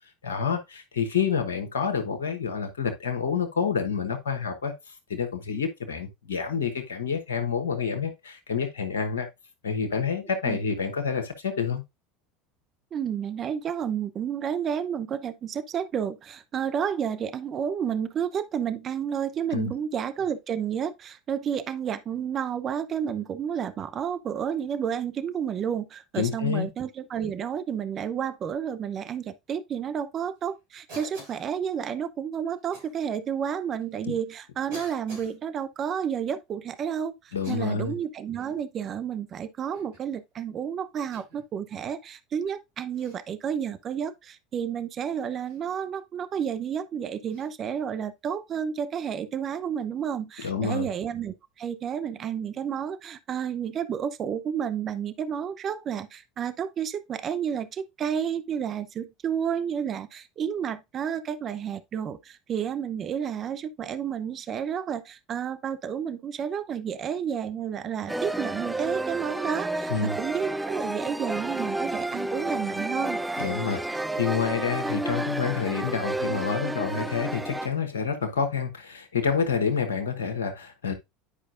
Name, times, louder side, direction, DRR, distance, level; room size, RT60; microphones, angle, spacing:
voice 1, 0.2-9.3 9.6-11.8 19.5-19.7 26.2-26.7 34.1-34.2 37.3-37.9 50.4-50.9 69.9-70.2 73.4-80.9, left 6 dB, 85° left, 1.0 m, -28 dB
voice 2, 12.9-73.2, right 8 dB, 40° right, 0.7 m, -31 dB
Cough, 30.9-31.5 32.7-32.9 33.8-33.9 34.7-35.3 37.3-37.9 38.3-38.6 39.7-40.1 41.1-41.5 42.9-43.2 45.4-45.6 47.3-47.5, right 1 dB, 70° right, 5.3 m, -46 dB
sound 1, 68.1-77.7, right 1 dB, 10° right, 0.4 m, -31 dB
9.9 x 4.8 x 2.5 m
hypercardioid pair, 80°, 0 cm